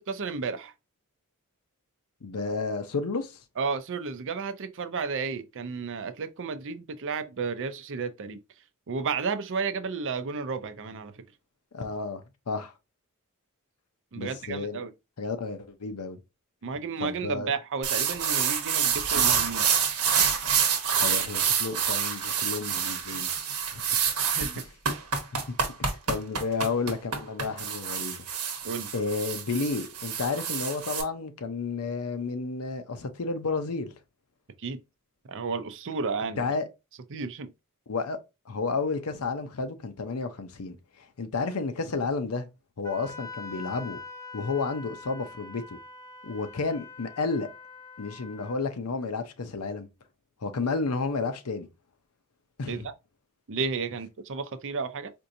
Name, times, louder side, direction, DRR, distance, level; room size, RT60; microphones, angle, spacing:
voice 1, 0.1-0.7 3.6-8.4 8.9-11.2 14.1-14.9 16.6-19.7 24.3-25.0 28.6-28.9 34.6-34.8 35.3-36.4 37.1-37.5 52.7-52.9 53.5-55.1, right 5 dB, 60° right, 0.5 m, -32 dB
voice 2, 2.2-3.4 11.7-12.7 14.2-14.8 15.2-16.2 17.0-17.5 21.0-23.3 23.7-23.8 25.3-28.3 28.9-33.9 36.4-36.7 37.9-38.2 38.5-42.5 42.8-44.0 44.3-45.8 46.2-47.5 48.0-49.9 50.4-51.7 52.6-52.9, left 4 dB, 75° left, 0.7 m, -31 dB
sound 1, 17.8-31.0, right 7 dB, 85° right, 1.1 m, -27 dB
Wind instrument woodwind instrument, 42.8-48.6, left 4 dB, 15° left, 0.5 m, -44 dB
4.4 x 2.6 x 2.6 m
head